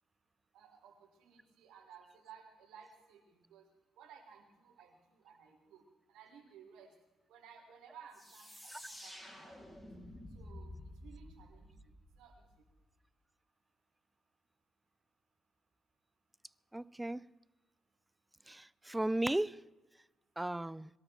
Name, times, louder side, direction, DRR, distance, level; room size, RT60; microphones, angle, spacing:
voice 1, 0.5-3.6 4.0-6.9 7.3-9.7 10.3-10.7 11.0-11.7 12.2-12.3, right 7 dB, 90° right, 4.1 m, -57 dB
sound 1, 8.1-12.7, left 1 dB, 10° left, 4.0 m, -51 dB
voice 2, 16.7-17.2 18.5-19.6 20.4-20.9, right 1 dB, 10° right, 0.4 m, -35 dB
22.0 x 13.0 x 4.5 m
cardioid pair, 90°, 0 cm